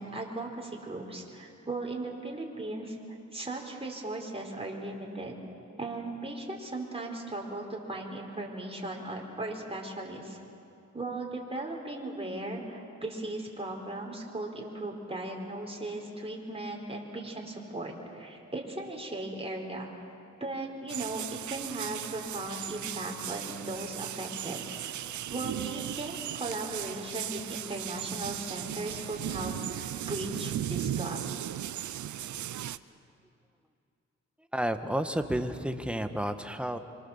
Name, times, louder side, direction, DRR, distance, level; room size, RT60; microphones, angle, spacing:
voice 1, 0.0-3.0 3.3-5.4 5.8-10.4 10.9-19.9 20.4-24.6 25.3-31.2, right 2 dB, 20° right, 0 dB, 4.5 m, -37 dB
sound 1, 20.9-32.8, right 11 dB, 80° right, 0.7 m, -37 dB
voice 2, 34.5-36.8, right 1 dB, 5° right, 7 dB, 1.5 m, -31 dB
26.0 x 23.5 x 7.4 m, 2.5 s
cardioid pair, 75°, 29 cm